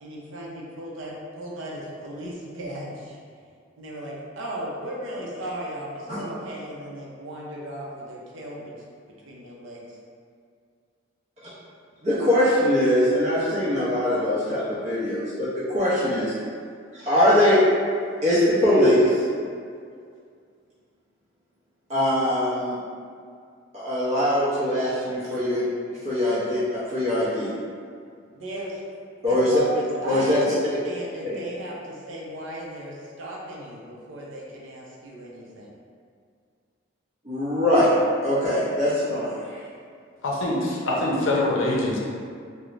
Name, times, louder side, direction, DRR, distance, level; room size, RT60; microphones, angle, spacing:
voice 1, 0.0-3.2 3.8-8.7 9.1-10.0 28.4-28.8 29.3-35.7, right 1 dB, 80° right, -3 dB, 0.5 m, -36 dB
voice 2, 12.0-16.3 16.9-17.6 18.2-19.2 21.9-22.8 23.7-25.7 26.0-27.5 29.2-29.5 30.0-30.4 31.3-31.4 37.2-37.9 38.2-39.6, left 1 dB, 35° right, -12 dB, 0.6 m, -22 dB
voice 3, 40.2-42.0, left 1 dB, 80° left, -3 dB, 0.5 m, -24 dB
3.0 x 2.0 x 2.5 m, 2.2 s
head